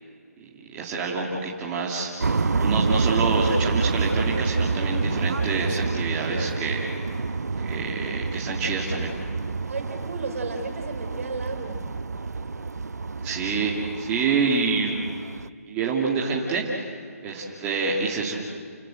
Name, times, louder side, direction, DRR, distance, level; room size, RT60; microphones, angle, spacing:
voice 1, 0.7-7.1 7.6-9.1 13.2-15.0 15.7-16.9 17.2-18.4, right 4 dB, 15° right, -4 dB, 2.6 m, -27 dB
sound 1, 2.2-15.5, right 4 dB, 85° right, 0.9 m, -28 dB
voice 2, 9.7-11.8, right 3 dB, 60° right, 5 dB, 4.9 m, -33 dB
29.0 x 18.0 x 7.8 m, 2.1 s
hypercardioid pair, 160°, 9 cm